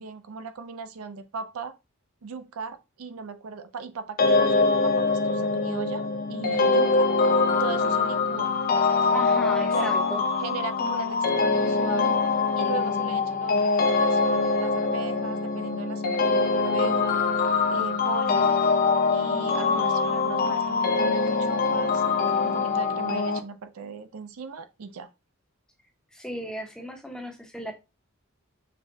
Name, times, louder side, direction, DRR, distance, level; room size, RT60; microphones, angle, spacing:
voice 1, 0.0-1.7 2.2-7.1 7.5-8.6 9.7-10.0 10.4-12.2 12.6-17.2 17.7-18.5 19.1-22.0 22.4-25.1, right 5 dB, 85° right, 0.5 m, -38 dB
sound 1, 4.2-23.4, left 4 dB, 45° left, 0.4 m, -23 dB
voice 2, 9.1-10.2 26.1-27.7, equal, 5° left, 0.7 m, -35 dB
5.2 x 2.2 x 2.6 m
head